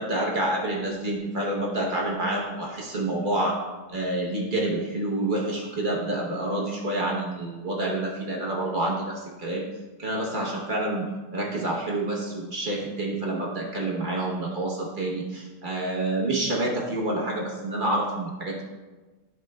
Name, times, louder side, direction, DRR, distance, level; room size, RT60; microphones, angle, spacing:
voice 1, 0.0-3.6 3.9-9.6 10.0-11.1 11.3-18.6, right 1 dB, 60° right, -2 dB, 0.5 m, -28 dB
9.9 x 6.4 x 2.2 m, 1.2 s
omnidirectional pair, 2.2 m